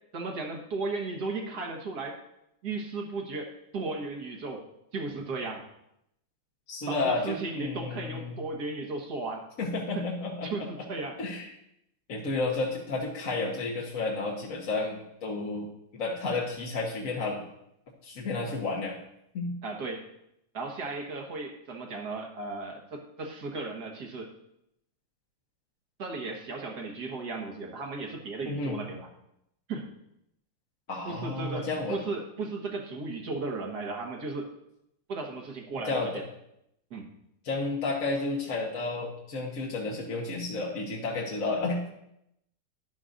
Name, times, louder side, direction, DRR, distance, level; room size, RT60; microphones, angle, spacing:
voice 1, 0.1-2.1 2.6-4.6 4.9-5.6 6.9-9.5 9.9-10.0 10.4-11.2 19.6-20.1 20.5-24.3 26.0-29.1 29.7-29.9 31.0-34.5 35.1-36.2 36.9-37.0, right 3 dB, 50° right, 2 dB, 1.8 m, -35 dB
voice 2, 6.7-8.4 9.6-10.7 11.2-11.5 12.1-15.7 15.9-17.4 18.0-19.0 19.3-19.5 28.4-28.8 30.9-32.0 35.8-36.2 37.4-41.9, left 3 dB, 45° left, -2 dB, 1.3 m, -31 dB
12.5 x 10.5 x 2.6 m, 0.80 s
omnidirectional pair, 2.4 m